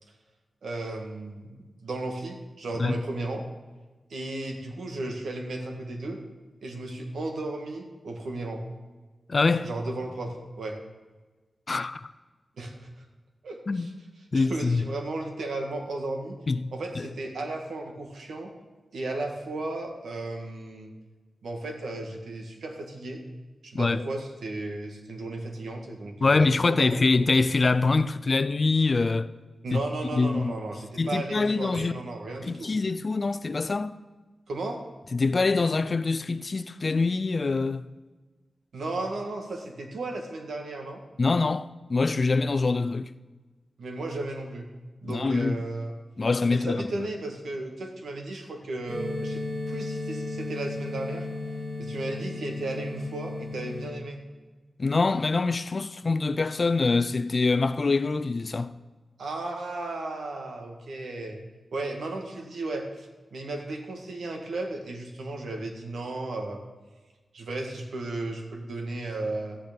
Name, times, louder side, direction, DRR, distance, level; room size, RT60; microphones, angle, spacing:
voice 1, 0.6-3.4 4.1-6.2 6.6-8.6 9.6-10.8 12.6-12.9 13.4-13.9 14.3-16.4 16.7-18.5 18.9-20.9 21.4-23.2 23.6-27.0 29.6-32.7 34.5-34.8 38.7-41.0 43.8-44.7 45.0-45.9 46.5-51.3 51.8-54.2 59.2-61.4 61.7-66.6 67.3-69.6, right 2 dB, 85° right, 1.9 m, -34 dB
voice 2, 9.3-9.7 11.7-12.1 13.7-13.9 14.3-14.9 16.5-17.1 23.7-24.0 26.2-29.3 29.7-29.8 30.1-30.5 31.0-31.9 32.5-33.9 35.1-37.9 41.2-43.1 45.0-45.6 46.2-47.1 54.8-58.7, left 3 dB, 35° left, 0.5 m, -24 dB
sound 1, 48.9-53.9, left 2 dB, 45° right, 4.6 m, -34 dB
13.5 x 9.0 x 5.3 m
wide cardioid pair, 150°, 0 cm